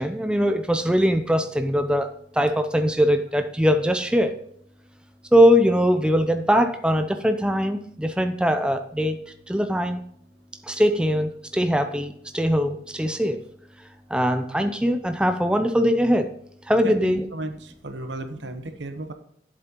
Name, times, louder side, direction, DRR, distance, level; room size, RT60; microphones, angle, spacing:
voice 1, 0.0-2.1 2.3-4.3 5.3-9.2 9.5-10.0 10.7-13.4 14.1-16.3 16.7-17.3, equal, 5° right, 7 dB, 0.5 m, -21 dB
voice 2, 16.8-19.1, right 2 dB, 80° right, 8 dB, 1.1 m, -35 dB
11.5 x 7.7 x 3.0 m, 0.69 s
head